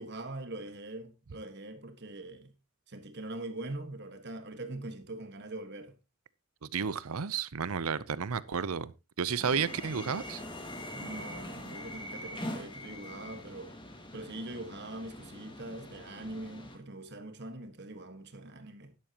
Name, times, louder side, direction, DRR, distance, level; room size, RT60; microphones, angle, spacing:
voice 1, 0.0-2.5 2.9-5.9 10.9-13.7 14.1-18.9, right 2 dB, 50° right, 1.6 m, -42 dB
voice 2, 6.6-8.9 9.2-10.4, right 6 dB, 75° right, 0.7 m, -32 dB
sound 1, 9.4-16.8, left 1 dB, 20° left, 2.0 m, -43 dB
12.0 x 11.0 x 2.9 m
head